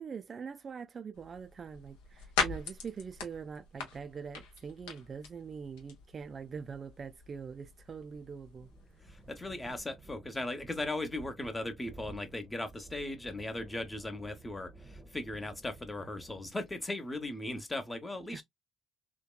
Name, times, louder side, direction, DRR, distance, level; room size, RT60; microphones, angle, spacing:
voice 1, 0.0-8.7 18.3-18.4, right 6 dB, 45° right, 0.3 m, -43 dB
sound 1, 1.1-9.8, left 5 dB, 80° left, 0.7 m, -41 dB
sound 2, 8.1-16.5, right 3 dB, 25° right, 0.7 m, -54 dB
voice 2, 9.1-18.4, left 2 dB, 20° left, 0.8 m, -38 dB
2.8 x 2.2 x 2.3 m
hypercardioid pair, 55°, 0 cm